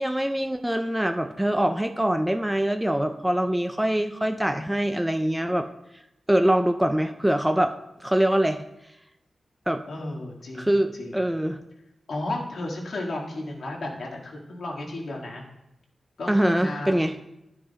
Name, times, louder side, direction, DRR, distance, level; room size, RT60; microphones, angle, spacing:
voice 1, 0.0-5.7 6.3-7.7 8.0-8.6 9.7-9.8 10.6-11.6 16.3-17.1, right 1 dB, 5° right, 7 dB, 0.4 m, -24 dB
voice 2, 9.9-11.2 12.1-15.4 16.2-17.0, left 2 dB, 55° left, -1 dB, 1.8 m, -33 dB
12.5 x 4.8 x 4.1 m, 0.88 s
wide cardioid pair, 150°, 0 cm